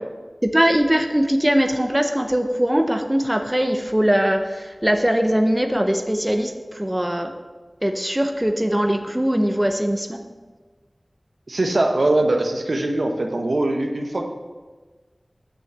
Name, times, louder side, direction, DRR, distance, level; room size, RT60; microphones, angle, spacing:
voice 1, 0.4-7.3 7.8-10.2, equal, 15° right, 5 dB, 0.7 m, -21 dB
voice 2, 11.5-14.3, right 2 dB, 80° right, 3 dB, 0.9 m, -21 dB
6.4 x 6.2 x 7.3 m, 1.3 s
wide cardioid pair, 60°, 0 cm